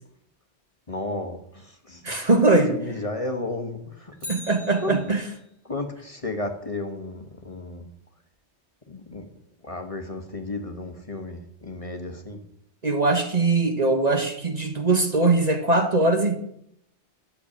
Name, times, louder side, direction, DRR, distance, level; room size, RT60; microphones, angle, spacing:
voice 1, 0.9-2.3 2.7-4.3 4.8-5.1 5.6-7.9 8.9-9.3 9.6-12.4, left 2 dB, 30° left, 4 dB, 1.3 m, -33 dB
voice 2, 2.0-2.7 4.3-5.2 12.8-16.4, right 3 dB, 35° right, 6 dB, 1.3 m, -21 dB
Bicycle, 4.2-5.5 13.9-14.0, left 2 dB, 60° right, 5.0 m, -41 dB
12.0 x 6.9 x 8.6 m, 0.73 s
omnidirectional pair, 1.1 m